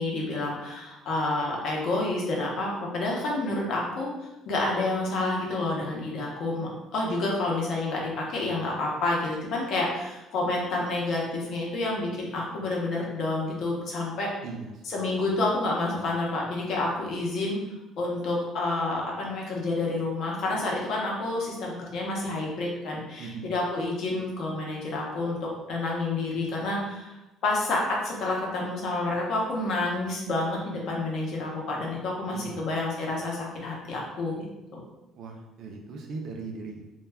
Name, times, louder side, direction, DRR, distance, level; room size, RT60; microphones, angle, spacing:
voice 1, 0.0-14.3 14.8-17.6 18.0-27.2 27.4-34.8, left 2 dB, 50° left, -2 dB, 0.6 m, -29 dB
voice 2, 23.2-23.5 32.3-32.6 35.1-36.8, right 4 dB, 50° right, 2 dB, 0.4 m, -38 dB
2.2 x 2.1 x 3.3 m, 1.0 s
cardioid pair, 170°, 0 cm